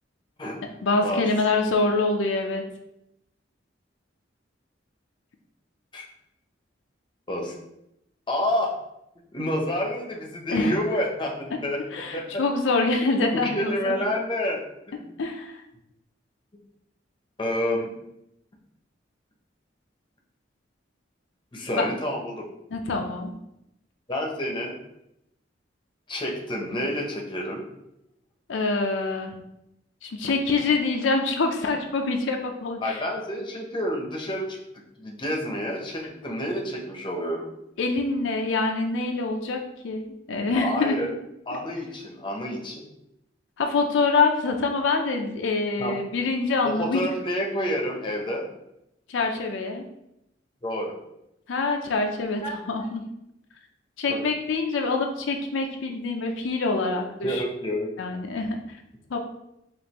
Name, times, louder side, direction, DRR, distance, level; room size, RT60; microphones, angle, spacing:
voice 1, 0.8-2.6 10.5-10.8 11.9-14.0 15.2-15.5 21.8-21.9 22.7-23.3 28.5-29.3 30.0-33.0 37.8-41.1 43.6-47.0 49.1-49.9 51.5-53.0 54.0-57.4 58.0-58.6 59.1-59.2, left 3 dB, 80° left, 3 dB, 0.5 m, -25 dB
voice 2, 8.3-8.7 9.3-12.4 13.1-14.6 14.9-15.1 17.4-17.9 21.5-22.5 24.1-24.7 26.1-27.6 32.8-34.6 35.0-37.4 40.5-41.1 41.5-42.8 45.8-46.0 46.6-48.4 50.6-50.9 52.4-52.6 54.1-54.2 57.2-57.9, left 1 dB, 25° left, 0 dB, 0.7 m, -29 dB
5.1 x 2.5 x 2.9 m, 0.83 s
head